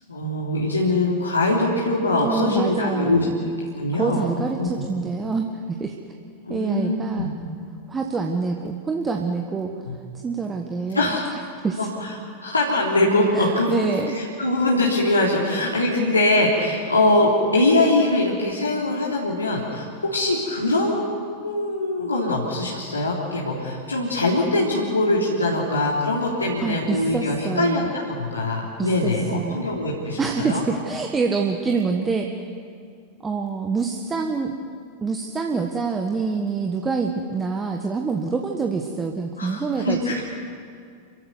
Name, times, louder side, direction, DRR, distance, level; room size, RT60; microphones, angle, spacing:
voice 1, 0.1-3.3 3.8-4.8 6.4-7.3 9.8-9.9 10.9-11.4 11.8-21.2 21.4-30.6 39.4-40.2, left 2 dB, 80° left, -4 dB, 3.4 m, -22 dB
voice 2, 2.2-3.3 3.9-5.5 5.8-5.9 6.5-7.3 7.9-9.7 10.2-11.1 11.6-11.9 13.3-14.1 26.6-27.9 28.8-29.6 30.2-32.3 33.2-34.5 35.0-40.0, right 4 dB, 15° right, 3 dB, 1.7 m, -26 dB
28.0 x 15.5 x 9.8 m, 2.3 s
figure-of-eight pair, 90°, 0 cm